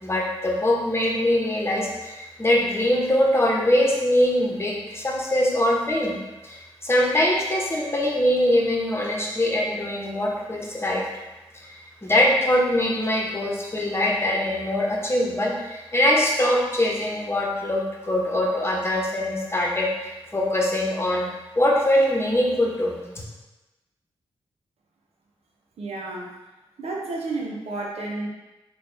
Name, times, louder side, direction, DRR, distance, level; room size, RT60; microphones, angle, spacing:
voice 1, 0.0-6.2 6.4-11.0 11.5-21.2 21.6-23.1, left 1 dB, 25° left, -2 dB, 1.0 m, -23 dB
voice 2, 25.8-26.3 26.8-28.3, right 2 dB, 80° right, -1 dB, 0.7 m, -31 dB
4.1 x 2.3 x 3.3 m, 1.1 s
cardioid pair, 45°, 10 cm